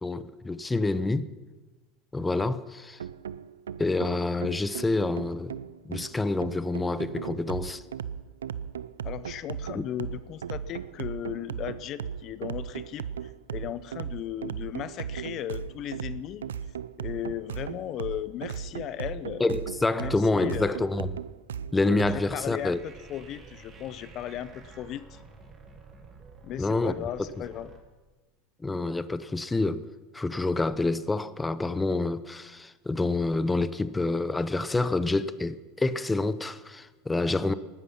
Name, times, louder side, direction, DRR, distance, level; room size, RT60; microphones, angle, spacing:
voice 1, 0.0-1.3 2.1-3.0 3.8-5.5 5.8-7.8 9.7-9.8 19.4-21.2 21.7-22.8 26.6-26.9 28.6-29.8 30.1-37.5, left 2 dB, 10° left, 0.8 m, -27 dB
sound 1, 3.0-22.2, right 8 dB, 90° right, 0.5 m, -37 dB
voice 2, 9.0-16.4 17.0-19.4 20.0-20.8 22.1-25.2 26.4-27.7, left 12 dB, 45° left, 0.6 m, -36 dB
sound 2, 22.1-27.8, right 4 dB, 30° right, 2.9 m, -50 dB
19.5 x 11.5 x 5.9 m
hypercardioid pair, 95°, 0 cm